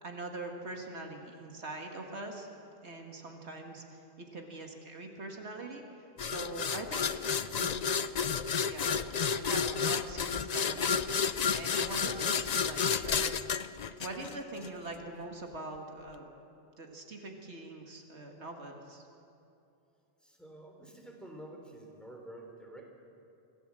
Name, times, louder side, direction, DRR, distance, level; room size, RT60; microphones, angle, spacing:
voice 1, 0.0-2.5 2.8-5.8 6.2-7.1 7.5-8.1 8.6-11.0 11.5-13.5 14.0-16.3 16.8-19.1, right 2 dB, 75° right, 2 dB, 2.2 m, -43 dB
sound 1, 6.2-14.7, left 6 dB, 45° left, 0.6 m, -31 dB
voice 2, 20.2-22.8, right 1 dB, ahead, 0 dB, 3.6 m, -49 dB
25.5 x 16.5 x 7.6 m, 2.7 s
omnidirectional pair, 1.1 m